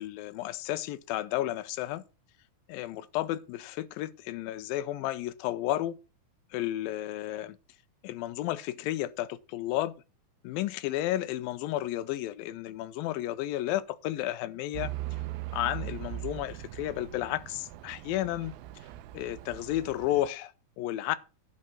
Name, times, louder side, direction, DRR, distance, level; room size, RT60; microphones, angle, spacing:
voice 1, 0.0-2.0 2.7-6.0 6.5-7.6 8.0-9.9 10.4-14.9 15.5-18.5 19.1-21.2, left 14 dB, 85° left, 2.4 m, -32 dB
Truck / Idling, 14.7-20.3, right 15 dB, 90° right, 2.5 m, -40 dB
11.0 x 5.4 x 5.9 m
omnidirectional pair, 4.1 m